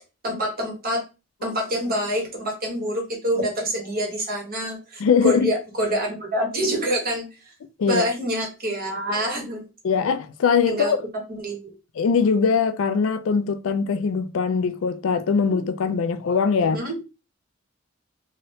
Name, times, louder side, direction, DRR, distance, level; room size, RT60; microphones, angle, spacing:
voice 1, 0.2-1.0 1.4-7.3 7.8-9.7 10.7-10.9 11.3-11.7 16.7-16.9, equal, 50° right, 1.2 m, -26 dB
voice 2, 5.0-5.5 7.8-8.1 9.8-11.0 12.0-16.8, left 5 dB, 70° left, 0.4 m, -21 dB
2.8 x 2.7 x 3.1 m
head